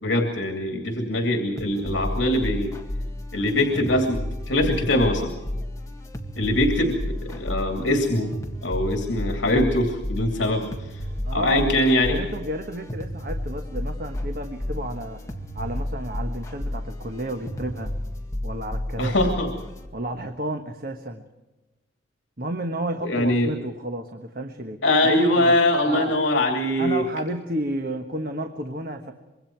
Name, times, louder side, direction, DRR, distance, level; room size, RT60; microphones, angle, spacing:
voice 1, 0.0-2.7 3.3-4.2 4.5-5.3 6.4-8.3 8.6-10.6 10.9-11.0 11.3-12.2 19.0-19.5 23.0-23.5 24.8-27.0, left 1 dB, 75° left, 4 dB, 2.7 m, -22 dB
sound 1, 1.6-19.9, left 1 dB, 15° left, 1.9 m, -32 dB
voice 2, 11.2-11.8 12.1-15.2 15.5-17.9 18.4-19.1 19.9-21.2 22.4-25.5 25.9-26.2 26.8-29.1, right 1 dB, 50° right, 6 dB, 1.3 m, -31 dB
25.5 x 23.0 x 4.6 m, 1.1 s
head